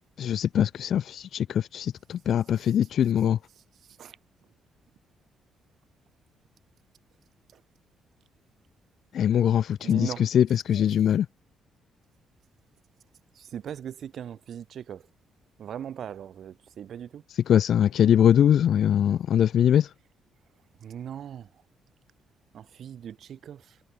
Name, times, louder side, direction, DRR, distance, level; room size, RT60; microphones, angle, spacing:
voice 1, 0.2-3.4 9.1-10.1 10.3-11.2 17.5-19.9, left 9 dB, 65° left, 0.6 m, -22 dB
voice 2, 3.7-4.2 7.5-7.6 9.8-10.3 10.7-10.8 13.3-15.1 15.6-17.2 20.8-21.6 22.5-23.8, right 9 dB, 65° right, 7.3 m, -40 dB
cardioid pair, 90°, 0 cm